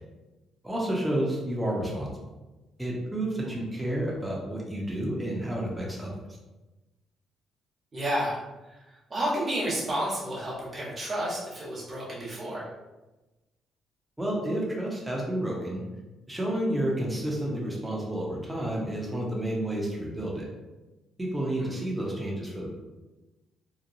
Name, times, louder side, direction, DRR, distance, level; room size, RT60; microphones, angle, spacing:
voice 1, 0.6-2.1 2.8-6.1 14.2-15.8 16.3-20.5 21.2-22.7, right 1 dB, 10° right, -4 dB, 0.8 m, -30 dB
voice 2, 7.9-8.4 9.1-12.7 21.6-21.7, right 1 dB, 35° right, -6 dB, 1.1 m, -31 dB
2.9 x 2.2 x 2.6 m, 1.1 s
cardioid pair, 75°, 0 cm